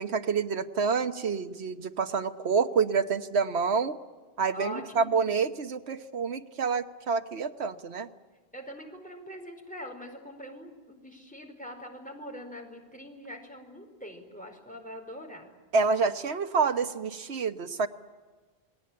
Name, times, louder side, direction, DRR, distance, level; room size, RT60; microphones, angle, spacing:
voice 1, 0.0-4.0 4.4-8.1 15.7-17.9, right 5 dB, 80° right, 7 dB, 1.4 m, -28 dB
voice 2, 4.5-5.2 8.5-15.5, left 1 dB, 5° left, 2 dB, 4.5 m, -43 dB
29.0 x 19.5 x 8.7 m, 1.4 s
omnidirectional pair, 1.1 m